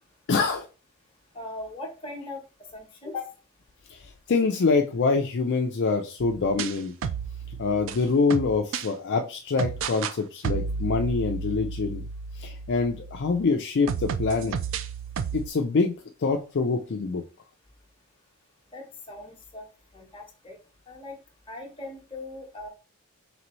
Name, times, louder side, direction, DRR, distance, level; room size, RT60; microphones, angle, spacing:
voice 1, 0.3-0.7 3.9-6.9 7.6-12.0 12.4-14.6 15.3-17.2, left 4 dB, 55° left, 3 dB, 0.4 m, -25 dB
voice 2, 1.3-2.4 2.7-3.4 18.7-19.7 19.9-20.6 20.9-21.2 21.5-22.7, left 2 dB, 25° left, 0 dB, 1.1 m, -39 dB
sound 1, 6.2-8.9 9.6-10.2 10.4-13.4 13.9-15.5, right 5 dB, 60° right, 0.3 m, -32 dB
4.0 x 3.3 x 3.1 m, 0.34 s
head